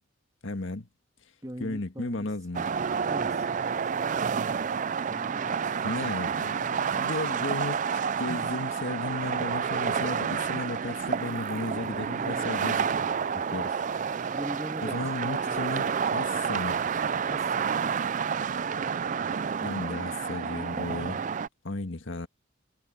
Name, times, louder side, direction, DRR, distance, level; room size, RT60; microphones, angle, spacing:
voice 1, 0.4-0.9 1.6-2.6 5.8-12.8 13.3-13.7 14.2-14.3 14.8-16.8 19.6-21.2 21.6-22.3, left 2 dB, 75° left, 1.8 m, -34 dB
voice 2, 1.4-2.3 3.0-3.5 5.1-5.6 12.2-12.9 14.3-15.7 17.3-17.7, equal, 15° right, 1.6 m, -41 dB
sound 1, 2.5-21.5, right 6 dB, 40° right, 0.4 m, -29 dB
head